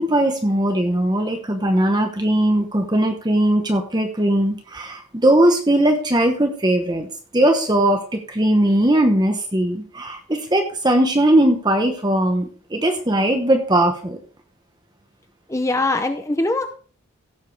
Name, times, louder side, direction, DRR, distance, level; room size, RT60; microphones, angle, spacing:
voice 1, 0.0-7.1 7.3-14.2, right 1 dB, 20° right, 5 dB, 1.0 m, -19 dB
voice 2, 15.5-16.7, left 2 dB, 15° left, 7 dB, 0.6 m, -22 dB
16.0 x 7.4 x 3.3 m, 0.43 s
head